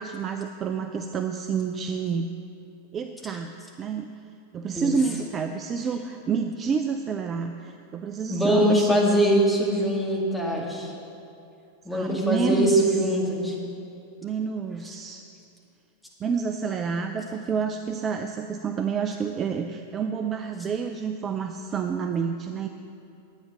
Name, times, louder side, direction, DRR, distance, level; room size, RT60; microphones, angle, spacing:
voice 1, 0.0-2.3 2.9-3.5 3.8-4.1 4.5-9.0 11.9-12.9 14.2-15.2 16.2-22.7, right 6 dB, 25° right, 6 dB, 0.5 m, -29 dB
voice 2, 8.3-10.9 11.8-13.5, equal, 5° left, -3 dB, 2.3 m, -22 dB
11.5 x 8.7 x 6.8 m, 2.7 s
figure-of-eight pair, 90°, 0 cm